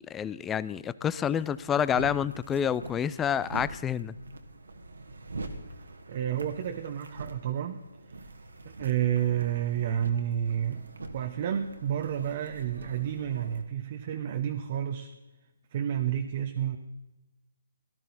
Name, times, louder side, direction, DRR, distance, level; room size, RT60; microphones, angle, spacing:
voice 1, 0.0-4.1, left 8 dB, 10° left, 17 dB, 0.4 m, -28 dB
sound 1, 1.0-13.6, right 2 dB, 80° right, 1.7 m, -44 dB
voice 2, 6.1-8.2 8.6-10.9 11.1-15.1 15.7-16.8, right 10 dB, 40° right, 6 dB, 0.9 m, -30 dB
18.0 x 12.5 x 4.2 m, 1.1 s
figure-of-eight pair, 145°, 0 cm